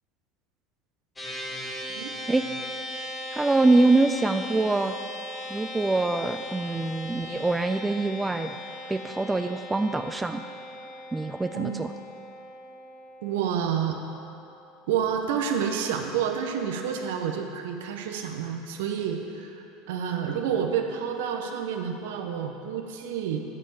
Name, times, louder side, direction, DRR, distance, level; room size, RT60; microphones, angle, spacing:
sound 1, 1.2-14.7, left 1 dB, 15° left, 1.6 m, -39 dB
voice 1, 3.3-4.9 5.5-8.5 8.9-10.4 11.1-11.9, right 2 dB, 10° right, 7 dB, 0.4 m, -24 dB
voice 2, 13.2-14.0 14.9-23.4, right 8 dB, 65° right, 4 dB, 0.9 m, -29 dB
9.4 x 5.4 x 7.0 m, 2.8 s
figure-of-eight pair, 75°, 0 cm